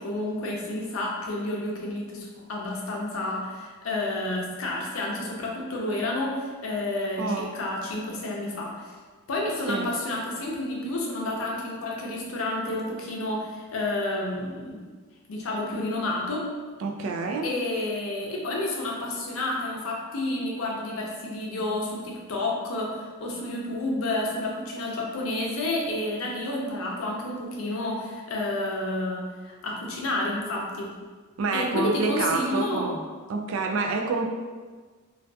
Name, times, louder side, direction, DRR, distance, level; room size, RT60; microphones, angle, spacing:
voice 1, 0.0-8.9 9.3-14.8 15.3-16.5 17.4-30.9 31.5-32.9, left 2 dB, 75° left, -2 dB, 0.5 m, -30 dB
voice 2, 7.2-7.5 9.7-9.9 16.8-17.5 31.4-33.0 33.3-34.3, right 4 dB, 75° right, 3 dB, 0.3 m, -27 dB
2.5 x 2.3 x 2.2 m, 1.4 s
head